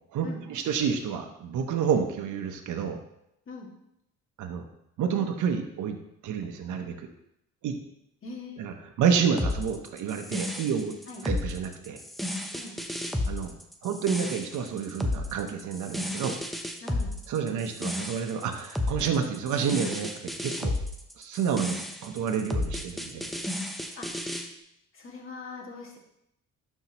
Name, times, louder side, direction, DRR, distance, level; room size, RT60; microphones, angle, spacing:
voice 1, 0.1-3.0 4.4-4.6 5.0-6.0 6.2-7.1 7.6-7.8 8.6-10.9 11.2-12.0 13.3-13.5 13.8-16.4 17.3-20.7 21.2-23.3, right 7 dB, 75° right, 4 dB, 0.9 m, -29 dB
voice 2, 8.2-8.6 11.1-11.2 12.5-12.7 16.8-17.1 23.9-24.2 24.9-26.0, left 3 dB, 45° left, -2 dB, 2.1 m, -42 dB
sound 1, 9.4-24.5, left 1 dB, ahead, 0.8 m, -32 dB
11.5 x 4.5 x 3.0 m, 0.79 s
cardioid pair, 90°, 30 cm